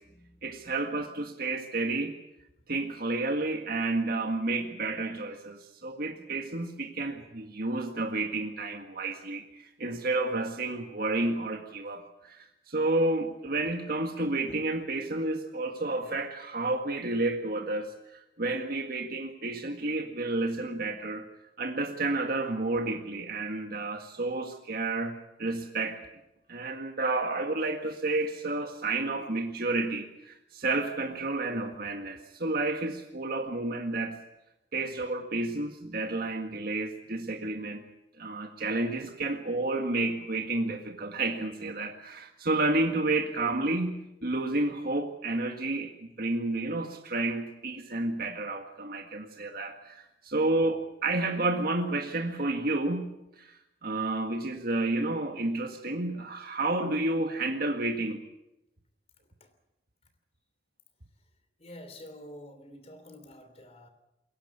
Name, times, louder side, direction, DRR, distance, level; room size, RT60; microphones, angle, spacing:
voice 1, 0.4-2.1 2.7-21.2 21.6-26.0 26.5-34.2 34.7-37.8 38.2-53.6 53.8-58.2, right 2 dB, 55° right, 1.8 m, -31 dB
voice 2, 61.6-63.9, left 1 dB, 35° left, 3.1 m, -48 dB
22.0 x 18.0 x 8.4 m
head